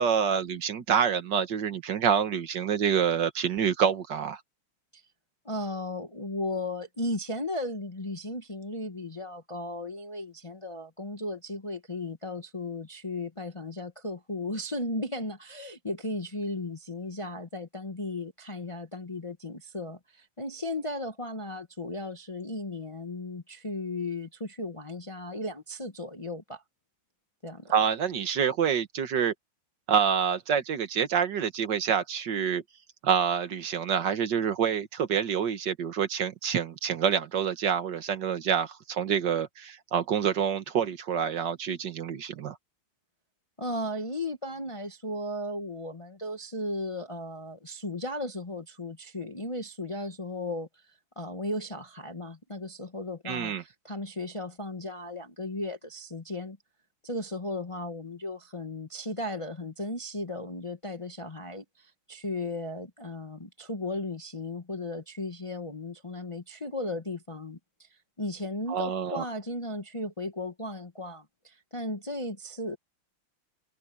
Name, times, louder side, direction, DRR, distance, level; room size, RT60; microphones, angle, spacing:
voice 1, 0.0-4.4 27.7-29.3 29.9-32.6 33.0-42.6 53.3-53.6 68.7-69.2, right 7 dB, 65° right, 1.8 m, -27 dB
voice 2, 5.4-26.6 27.4-27.7 43.6-56.6 57.0-72.8, left 2 dB, 20° left, 0.9 m, -36 dB
omnidirectional pair, 2.2 m